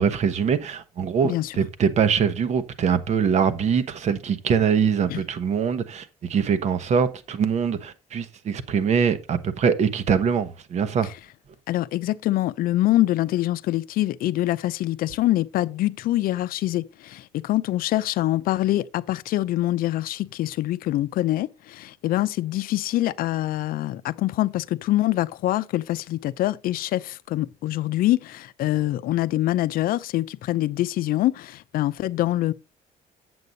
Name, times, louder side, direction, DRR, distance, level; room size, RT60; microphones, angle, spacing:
voice 1, 0.0-11.1, right 6 dB, 50° right, 1.0 m, -23 dB
voice 2, 11.7-32.5, left 15 dB, 80° left, 0.5 m, -25 dB
8.3 x 7.8 x 3.9 m
cardioid pair, 150°, 15 cm